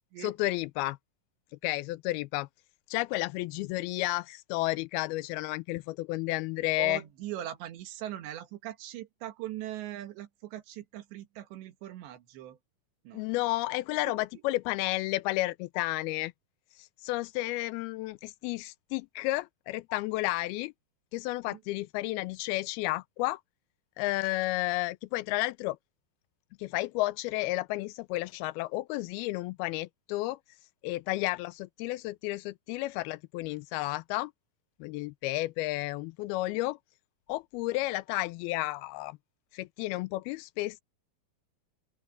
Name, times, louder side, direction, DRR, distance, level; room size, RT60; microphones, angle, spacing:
voice 1, 0.2-1.0 1.6-2.5 2.9-7.0 13.1-16.3 16.8-20.7 21.1-23.4 24.0-25.8 26.6-30.4 30.8-34.3 34.8-36.8 37.3-39.2 39.5-40.8, left 19 dB, 80° left, 2.3 m, -32 dB
voice 2, 6.8-12.6 13.0-13.2 14.1-14.4 21.5-21.6, right 12 dB, 85° right, 3.9 m, -41 dB
open air
omnidirectional pair, 4.9 m